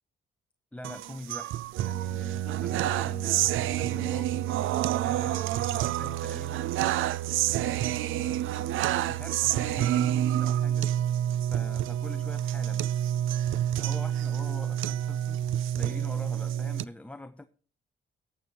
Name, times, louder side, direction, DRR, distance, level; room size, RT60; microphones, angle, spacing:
voice 1, 0.7-4.5 5.0-6.7 7.5-10.9 11.4-12.9 13.8-15.4 15.7-17.4, left 1 dB, 5° left, 0.6 m, -44 dB
sound 1, 0.8-16.8, right 12 dB, 85° right, 0.4 m, -28 dB
18.5 x 7.0 x 2.9 m
cardioid pair, 95°, 20 cm